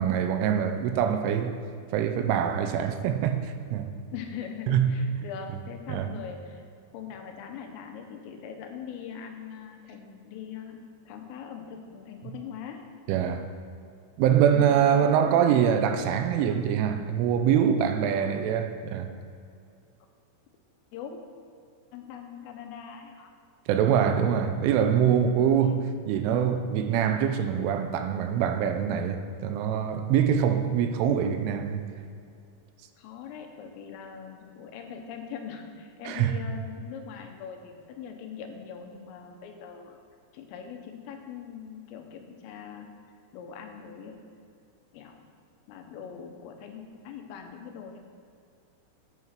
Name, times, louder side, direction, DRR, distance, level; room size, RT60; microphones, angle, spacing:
voice 1, 0.0-1.6 1.9-4.0 4.7-5.0 5.9-6.1 13.1-13.5 14.2-19.1 23.7-31.8 36.1-36.3, right 8 dB, 85° right, 3.1 m, -24 dB
voice 2, 4.1-6.7 6.9-12.8 14.3-15.5 18.1-18.4 20.9-21.2 21.9-23.3 25.6-25.8 33.0-40.0 40.3-42.9 43.3-44.2 44.9-45.3 45.7-48.0, left 7 dB, 85° left, 3.7 m, -41 dB
9.8 x 9.0 x 6.0 m
omnidirectional pair, 5.7 m